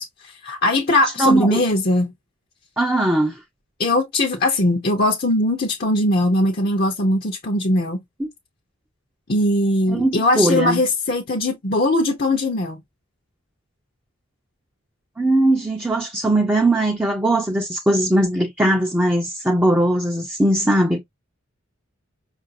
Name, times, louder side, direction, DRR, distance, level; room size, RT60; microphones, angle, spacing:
voice 1, 0.0-2.1 3.8-8.0 9.3-12.8, left 1 dB, 45° left, 0.7 m, -20 dB
voice 2, 1.2-1.6 2.8-3.4 8.2-8.3 9.9-10.8 15.2-21.0, right 1 dB, 10° right, 0.5 m, -19 dB
5.4 x 2.5 x 2.6 m
head